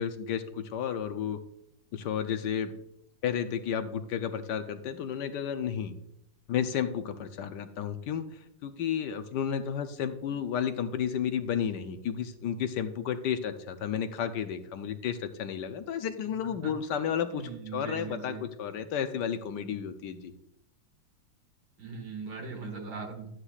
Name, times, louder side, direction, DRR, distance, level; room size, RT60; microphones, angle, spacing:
voice 1, 0.0-1.4 1.9-2.7 3.2-5.9 6.5-8.2 8.6-20.3, left 8 dB, 70° left, 9 dB, 1.2 m, -32 dB
voice 2, 17.3-18.5 21.8-23.3, right 4 dB, 60° right, 2 dB, 2.3 m, -39 dB
13.0 x 9.8 x 2.4 m, 0.76 s
omnidirectional pair, 2.0 m